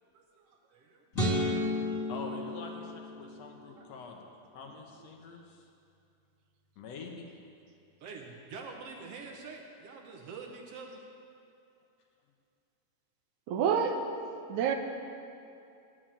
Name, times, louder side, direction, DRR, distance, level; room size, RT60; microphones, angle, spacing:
voice 1, 0.7-1.0 3.7-3.9 4.6-5.1 8.0-11.0, right 4 dB, 65° right, 2 dB, 1.8 m, -46 dB
sound 1, 1.1-3.5, left 1 dB, 30° left, 2.0 m, -32 dB
voice 2, 2.1-4.2 4.5-5.7 6.8-7.2, left 4 dB, 70° left, 2 dB, 2.0 m, -45 dB
voice 3, 13.5-14.1 14.5-14.7, right 7 dB, 80° right, 5 dB, 2.2 m, -27 dB
10.5 x 7.5 x 8.7 m, 2.5 s
omnidirectional pair, 3.4 m